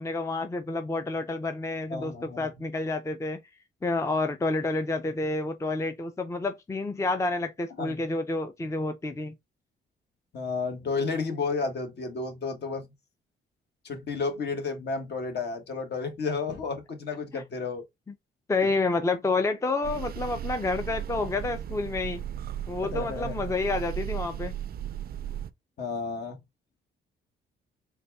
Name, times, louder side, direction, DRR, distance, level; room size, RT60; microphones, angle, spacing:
voice 1, 0.0-3.4 3.8-9.3 17.3-17.4 18.5-22.2 22.7-24.5, left 3 dB, 15° left, 0.5 m, -29 dB
voice 2, 1.9-2.5 7.8-7.9 10.3-12.9 13.8-17.8 22.8-23.4 25.8-26.4, left 4 dB, 60° left, 1.3 m, -32 dB
sound 1, 19.8-25.5, right 11 dB, 50° right, 0.4 m, -36 dB
4.0 x 2.3 x 3.3 m
cardioid pair, 90°, 20 cm